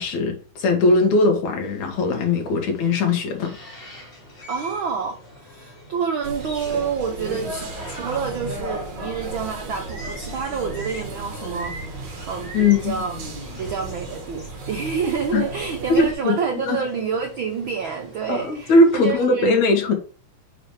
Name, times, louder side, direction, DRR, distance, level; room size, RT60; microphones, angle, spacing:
voice 1, 0.0-3.5 12.5-13.0 15.3-15.4 15.9-16.3 16.6-16.8 18.3-19.9, left 2 dB, 70° left, 2.8 m, -19 dB
sound 1, 1.6-19.1, equal, 40° left, 3.6 m, -44 dB
voice 2, 4.5-12.0 12.3-13.2 13.6-19.6, right 6 dB, 75° right, 1.1 m, -28 dB
sound 2, 6.2-16.1, right 2 dB, 50° right, 1.6 m, -34 dB
6.0 x 5.0 x 4.8 m
omnidirectional pair, 3.5 m